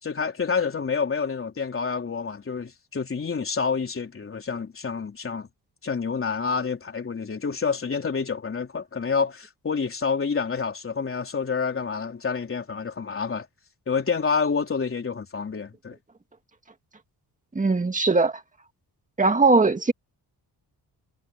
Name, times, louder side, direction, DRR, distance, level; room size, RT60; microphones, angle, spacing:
voice 1, 0.0-5.5 5.8-13.5 13.9-16.0, left 5 dB, 35° left, 3.8 m, -28 dB
voice 2, 17.5-18.4 19.2-19.9, right 3 dB, 20° right, 2.0 m, -20 dB
wide cardioid pair, 135°, 39 cm